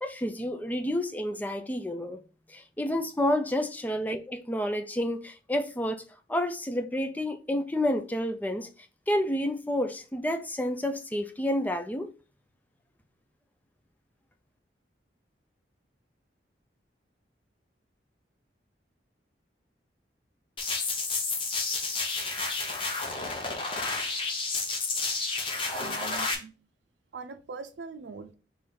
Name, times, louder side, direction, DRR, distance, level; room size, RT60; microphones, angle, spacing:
voice 1, 0.0-2.2 2.5-6.0 6.3-8.7 9.1-12.1, left 1 dB, 10° left, 0.4 m, -29 dB
sound 1, 20.6-26.3, left 3 dB, 30° left, 0.9 m, -31 dB
voice 2, 25.7-26.5 27.1-28.3, right 4 dB, 80° right, 0.5 m, -42 dB
3.8 x 3.2 x 4.2 m
head